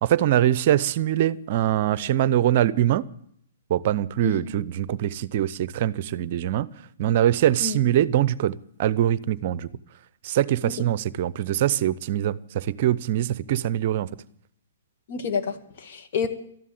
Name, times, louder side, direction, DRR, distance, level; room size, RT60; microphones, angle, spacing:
voice 1, 0.0-3.0 3.7-6.7 7.0-9.7 10.2-14.1, right 12 dB, 50° right, 19 dB, 0.6 m, -23 dB
voice 2, 15.1-16.3, left 6 dB, 55° left, 6 dB, 1.9 m, -29 dB
13.5 x 11.0 x 8.8 m, 0.65 s
hypercardioid pair, 125°, 0 cm